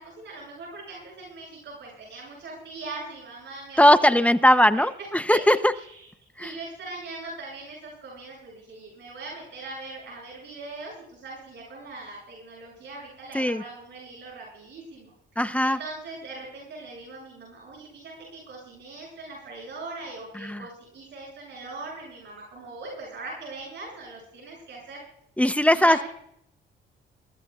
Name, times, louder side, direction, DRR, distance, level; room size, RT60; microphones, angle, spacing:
voice 1, 0.0-4.1 4.7-5.4 5.7-6.1 6.4-25.0 25.7-26.1, right 3 dB, 65° right, -2 dB, 7.5 m, -41 dB
voice 2, 3.8-5.7 6.4-6.5 13.3-13.6 15.4-15.8 20.4-20.6 25.4-26.1, left 1 dB, 5° left, 11 dB, 0.7 m, -19 dB
23.0 x 16.0 x 2.4 m, 0.71 s
cardioid pair, 90°, 20 cm